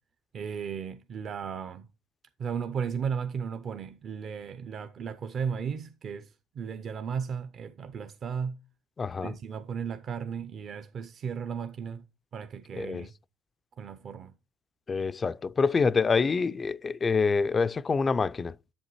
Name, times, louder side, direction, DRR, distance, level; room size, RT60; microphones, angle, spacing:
voice 1, 0.3-1.9 2.4-8.6 9.2-12.0 12.3-13.1 13.8-14.3, right 6 dB, 45° right, 0.5 m, -35 dB
voice 2, 9.0-9.3 12.8-13.1 14.9-18.6, left 4 dB, 30° left, 0.3 m, -26 dB
7.7 x 7.3 x 3.0 m
supercardioid pair, 80°, 0 cm